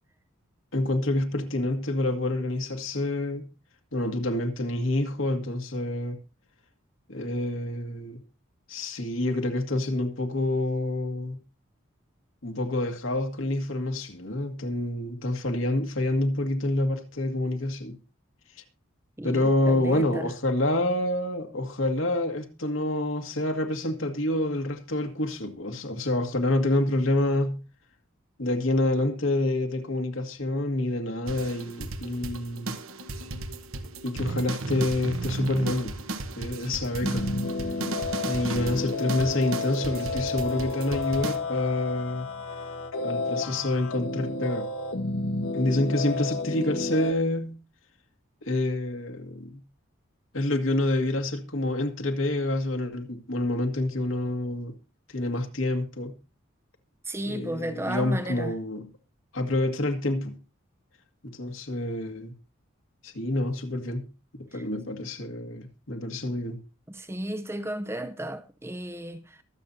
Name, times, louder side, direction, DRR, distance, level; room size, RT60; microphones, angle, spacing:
voice 1, 0.7-3.5 3.9-6.2 7.1-8.2 8.7-11.4 12.4-18.0 19.2-27.6 28.4-32.7 34.0-36.1 36.4-37.3 38.2-42.3 43.0-44.7 45.5-47.6 48.4-49.6 50.3-54.7 55.1-56.1 57.3-58.9 59.3-60.4 61.2-62.3 63.0-64.1 64.3-66.6, left 1 dB, 70° left, 2.0 m, -27 dB
voice 2, 19.2-20.3 57.1-58.5 64.5-64.6 66.9-69.4, right 1 dB, 10° right, 0.6 m, -34 dB
sound 1, 31.3-41.4, right 2 dB, 75° right, 1.3 m, -35 dB
sound 2, 37.0-47.1, left 3 dB, 90° left, 1.7 m, -31 dB
23.5 x 7.8 x 2.7 m
head